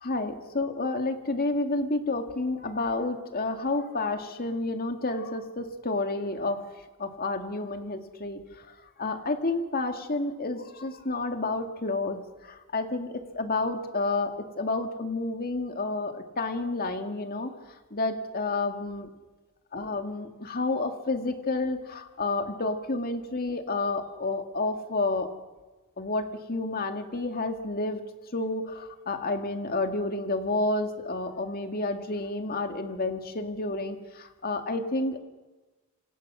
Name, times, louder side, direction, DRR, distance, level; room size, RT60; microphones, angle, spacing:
voice 1, 0.0-6.6 7.0-8.4 9.0-17.5 17.9-19.1 19.7-25.3 26.0-28.0 28.3-35.2, left 2 dB, 45° left, 6 dB, 2.2 m, -30 dB
26.5 x 25.5 x 6.3 m, 1.2 s
head